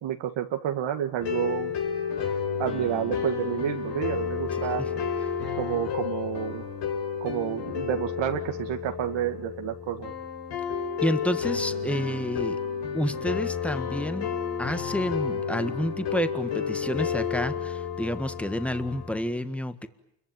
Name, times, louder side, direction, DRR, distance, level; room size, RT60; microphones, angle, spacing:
voice 1, 0.0-1.7 2.6-4.8 5.6-6.6 7.2-10.1, right 10 dB, 80° right, 5 dB, 1.8 m, -29 dB
sound 1, 1.2-19.2, left 7 dB, 70° left, 5.0 m, -31 dB
voice 2, 11.0-12.6 12.9-14.3 14.6-19.9, left 1 dB, 5° left, 10 dB, 1.6 m, -29 dB
28.5 x 22.5 x 9.2 m, 0.81 s
cardioid pair, 110°, 44 cm